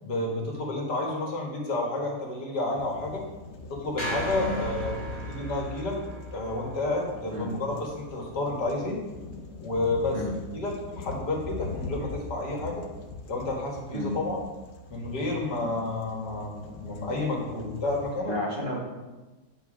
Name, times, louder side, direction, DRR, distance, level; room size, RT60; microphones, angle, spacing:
voice 1, 0.0-3.2 3.7-6.0 6.3-9.0 9.6-12.8 13.3-14.4 14.9-18.3, left 2 dB, 75° left, -1 dB, 2.3 m, -30 dB
sound 1, 2.8-18.2, left 3 dB, 55° left, 0.8 m, -43 dB
sound 2, 4.0-8.3, equal, 20° left, 1.3 m, -36 dB
voice 2, 18.3-18.8, equal, 30° right, -3 dB, 1.8 m, -32 dB
9.1 x 5.3 x 5.1 m, 1.2 s
omnidirectional pair, 1.8 m